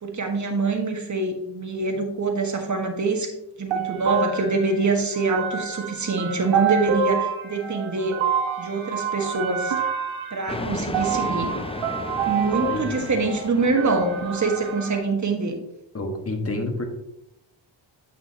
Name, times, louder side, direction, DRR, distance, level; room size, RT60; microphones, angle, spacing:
voice 1, 0.0-3.3 3.6-8.2 8.6-9.9 10.3-11.5 12.3-15.6, right 3 dB, 40° right, 4 dB, 1.5 m, -25 dB
sound 1, 3.7-15.0, right 7 dB, 75° right, 1.3 m, -28 dB
sound 2, 10.5-15.0, left 2 dB, 15° left, 0.5 m, -34 dB
voice 2, 12.6-13.1 15.9-16.8, left 2 dB, 30° left, 3 dB, 1.6 m, -29 dB
8.5 x 6.0 x 2.9 m, 0.82 s
cardioid pair, 75°, 47 cm